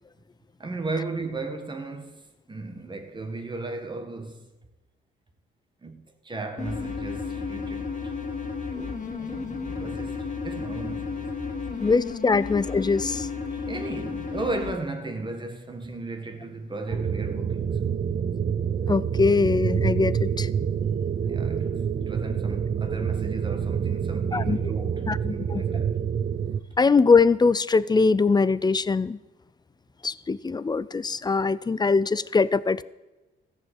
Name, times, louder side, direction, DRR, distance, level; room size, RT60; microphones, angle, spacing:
voice 1, 0.6-4.5 5.8-8.1 8.7-11.3 11.8-11.9 12.3-12.4 13.7-18.0 21.2-26.0, right 2 dB, 25° right, 1.9 m, -35 dB
sound 1, 6.6-14.8, left 5 dB, 40° left, 2.6 m, -33 dB
voice 2, 11.8-13.3 18.9-20.5 24.3-24.6 25.1-25.6 26.8-29.2 30.0-32.8, left 4 dB, 20° left, 0.5 m, -22 dB
sound 2, 16.9-26.6, right 7 dB, 40° right, 0.7 m, -27 dB
14.5 x 7.0 x 8.3 m
cardioid pair, 90°, 20 cm